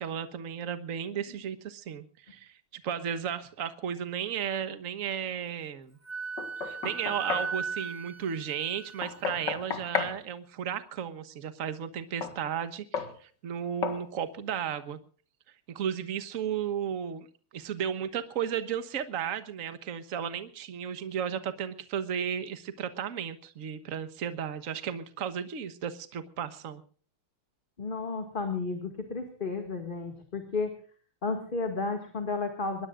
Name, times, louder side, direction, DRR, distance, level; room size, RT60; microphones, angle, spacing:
voice 1, 0.0-6.0 6.6-15.0 15.7-17.3 17.5-26.8, right 8 dB, 45° right, 11 dB, 1.4 m, -34 dB
Wind instrument woodwind instrument, 6.1-9.5, right 5 dB, 10° right, 1.5 m, -37 dB
Knock, 6.4-7.5 9.0-10.2 12.2-12.4 12.9-13.2 13.8-14.0, left 6 dB, 55° left, 2.3 m, -33 dB
voice 2, 27.8-30.7 31.2-32.9, left 4 dB, 25° left, 5 dB, 2.0 m, -32 dB
23.0 x 20.5 x 2.5 m, 0.42 s
omnidirectional pair, 2.3 m